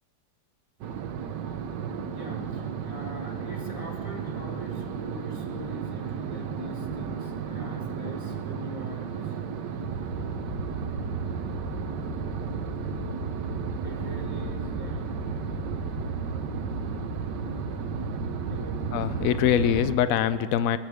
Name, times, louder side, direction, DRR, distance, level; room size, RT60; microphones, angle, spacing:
sound 1, 0.8-20.0, right 6 dB, 85° right, 1.5 m, -34 dB
voice 1, 2.1-9.5 13.8-15.1 18.5-18.9, equal, 20° right, 0 dB, 1.4 m, -43 dB
sound 2, 9.8-19.8, right 2 dB, 40° left, 4.1 m, -36 dB
voice 2, 18.9-20.8, left 9 dB, 70° left, 14 dB, 0.9 m, -23 dB
20.5 x 18.5 x 3.5 m, 2.3 s
omnidirectional pair, 1.8 m